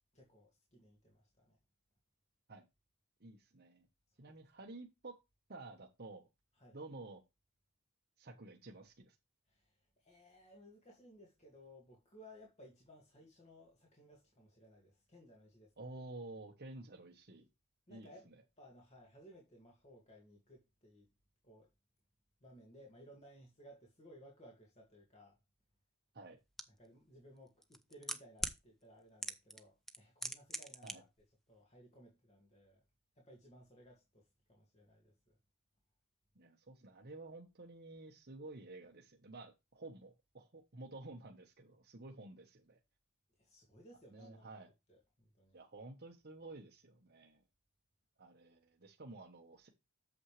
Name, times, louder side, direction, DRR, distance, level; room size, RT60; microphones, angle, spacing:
voice 1, 0.1-1.6 6.5-6.8 9.5-16.0 17.9-18.3 18.6-21.1 21.4-21.7 22.4-25.4 26.8-31.1 31.5-32.8 33.2-35.4 43.4-44.6 44.9-45.6, equal, 30° left, 2.2 m, -60 dB
voice 2, 3.2-3.9 4.2-5.1 5.5-6.3 6.7-7.2 8.2-9.1 15.8-17.5 17.9-18.1 26.1-26.4 30.8-31.0 36.3-42.8 44.1-44.7 45.5-47.4 48.2-49.7, right 2 dB, 45° right, 1.1 m, -51 dB
sound 1, 26.6-26.7 27.6-28.6 29.2-29.6 29.9-30.9 31.2-31.3, equal, ahead, 0.7 m, -39 dB
8.6 x 7.1 x 3.3 m
head